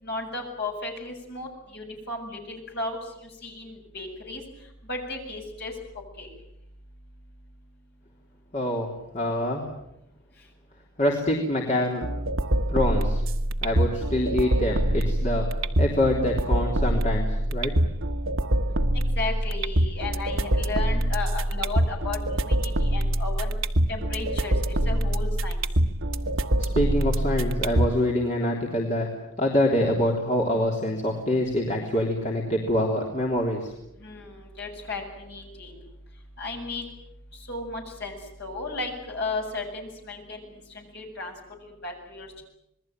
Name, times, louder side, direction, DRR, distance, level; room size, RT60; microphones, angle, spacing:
voice 1, 0.0-3.0 3.4-4.4 4.9-5.7 6.2-6.3 18.9-23.5 23.9-25.6 34.0-35.8 36.4-36.8 37.5-40.4 40.7-41.3 41.8-42.4, left 3 dB, 50° left, 1 dB, 7.7 m, -34 dB
voice 2, 8.5-8.9 9.1-9.6 11.0-12.1 12.7-13.2 13.6-15.5 15.8-17.7 26.6-29.1 29.4-33.7, left 1 dB, 30° left, -1 dB, 3.5 m, -25 dB
sound 1, 12.0-28.0, right 1 dB, 60° right, 1.4 m, -25 dB
27.5 x 21.0 x 9.1 m, 0.81 s
head